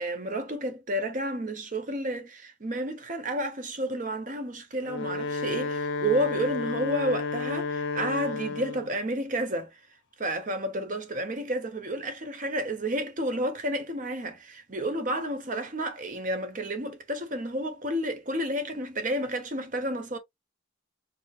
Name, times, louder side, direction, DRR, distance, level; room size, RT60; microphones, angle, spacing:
voice 1, 0.0-9.8 10.2-20.2, right 1 dB, 40° right, 1.0 m, -31 dB
Wind instrument woodwind instrument, 4.7-9.0, left 4 dB, 70° left, 0.6 m, -31 dB
4.7 x 2.0 x 3.0 m
head